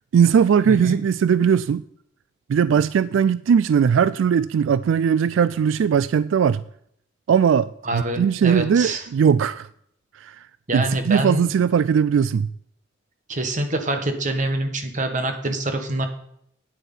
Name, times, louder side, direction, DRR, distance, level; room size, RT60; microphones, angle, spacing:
voice 1, 0.1-1.8 2.5-6.6 7.3-9.7 10.1-10.5 10.7-12.5, right 7 dB, 75° right, 0.3 m, -19 dB
voice 2, 0.6-1.0 7.8-9.0 10.7-11.5 13.3-16.1, right 1 dB, 40° right, 1.4 m, -25 dB
9.3 x 9.0 x 5.5 m
head